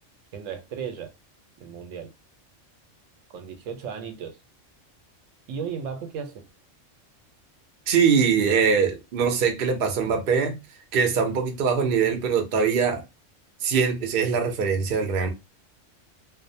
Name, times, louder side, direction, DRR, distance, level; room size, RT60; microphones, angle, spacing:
voice 1, 0.3-1.1 1.6-2.1 3.3-4.4 5.5-6.4, right 7 dB, 85° right, 1.0 m, -35 dB
voice 2, 7.9-10.6 10.9-13.0 13.6-15.3, right 6 dB, 55° right, 0.7 m, -22 dB
2.6 x 2.0 x 2.6 m
omnidirectional pair, 1.3 m